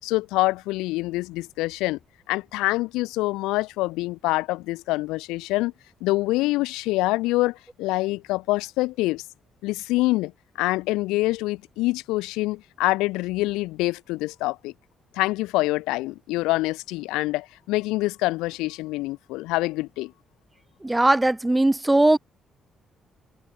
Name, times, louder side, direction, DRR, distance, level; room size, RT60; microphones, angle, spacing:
voice 1, 0.0-2.0 2.3-5.7 6.0-9.2 9.6-10.3 10.6-14.7 15.1-20.1, left 20 dB, 80° left, 4.6 m, -25 dB
voice 2, 20.8-22.2, right 2 dB, 15° right, 3.4 m, -19 dB
hypercardioid pair, 45°, 0 cm